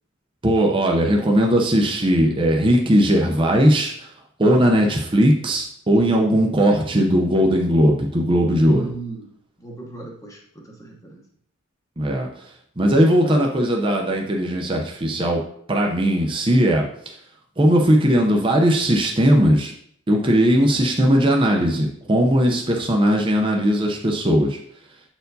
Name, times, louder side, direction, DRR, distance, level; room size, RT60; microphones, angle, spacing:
voice 1, 0.4-3.9 4.4-8.9 12.0-12.3 12.8-15.4 15.7-16.8 17.6-19.7 20.1-24.6, equal, 25° right, 0 dB, 0.6 m, -18 dB
voice 2, 8.6-9.3 9.6-11.2 22.4-22.6, right 3 dB, 15° left, 0 dB, 1.0 m, -35 dB
7.9 x 4.4 x 2.7 m, 0.67 s
head